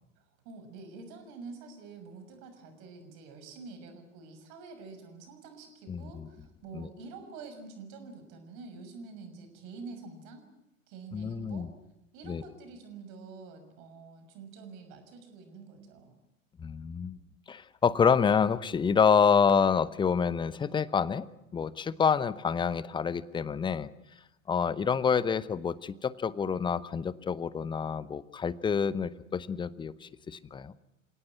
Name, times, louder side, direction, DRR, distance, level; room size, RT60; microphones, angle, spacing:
voice 1, 0.2-10.4 10.9-11.7 12.1-16.2, right 4 dB, 45° right, 8 dB, 6.4 m, -47 dB
voice 2, 5.9-6.3 6.7-6.9 11.1-11.7 12.3-12.4 16.6-17.2 17.5-21.3 21.5-23.9 24.5-30.7, left 6 dB, 10° left, 18 dB, 0.8 m, -27 dB
28.5 x 17.5 x 9.6 m, 0.94 s
figure-of-eight pair, 90°, 38 cm